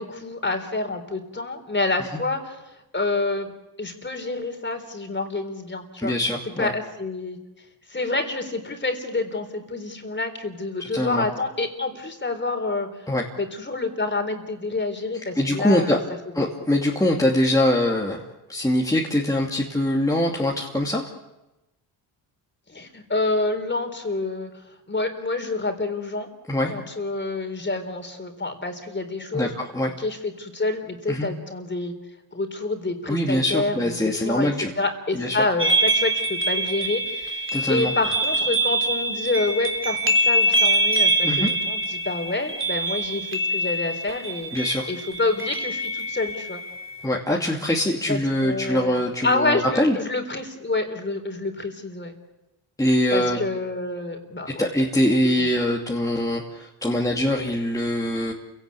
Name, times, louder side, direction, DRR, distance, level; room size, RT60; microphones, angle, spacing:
voice 1, 0.0-2.6 2.9-3.5 3.8-6.1 6.6-7.4 7.9-12.9 13.4-16.0 16.4-16.5 22.7-24.5 24.9-26.3 26.6-29.5 30.0-31.9 32.3-34.5 34.8-44.5 44.9-46.6 48.1-52.1 53.1-54.7, left 3 dB, 25° left, 6 dB, 3.9 m, -28 dB
voice 2, 6.0-6.7 10.8-11.2 13.1-13.2 15.4-16.0 16.3-18.2 18.5-21.1 26.5-26.7 29.3-29.9 31.1-31.3 33.1-34.7 35.1-35.4 37.5-37.9 41.2-41.5 44.5-44.9 47.0-50.0 52.8-53.4 54.6-58.3, left 1 dB, 5° left, -2 dB, 2.6 m, -23 dB
sound 1, 35.6-47.0, right 1 dB, 25° right, 3.3 m, -24 dB
28.5 x 17.5 x 8.4 m, 0.98 s
cardioid pair, 90°, 46 cm